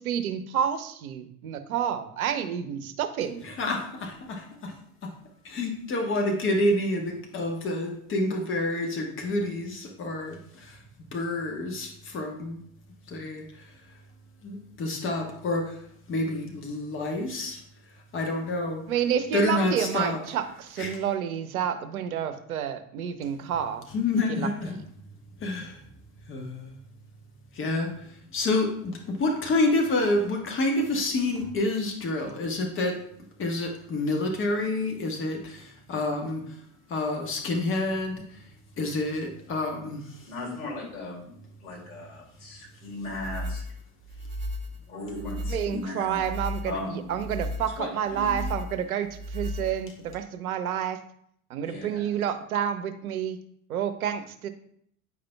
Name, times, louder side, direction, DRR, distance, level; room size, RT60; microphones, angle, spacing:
voice 1, 0.0-3.4 18.9-23.9 24.3-24.8 45.5-51.0 51.5-53.4 53.7-54.5, right 9 dB, 70° right, 9 dB, 0.7 m, -29 dB
voice 2, 3.4-4.7 5.0-5.1 5.4-10.8 11.1-12.6 13.1-13.4 14.4-15.8 16.1-17.6 18.1-18.8 19.3-20.2 20.8-21.0 23.9-24.7 25.4-25.8 26.3-26.7 27.5-27.9 28.3-33.0 33.4-36.4 36.9-38.2 38.8-40.0, left 2 dB, 30° left, 3 dB, 1.1 m, -28 dB
voice 3, 40.3-43.6 44.7-46.2 46.6-47.2 47.8-48.3 51.6-52.1, left 2 dB, 70° left, -4 dB, 2.8 m, -37 dB
sound 1, 43.1-50.2, left 1 dB, 25° right, 0.7 m, -35 dB
9.5 x 5.0 x 2.3 m, 0.67 s
figure-of-eight pair, 70°, 44 cm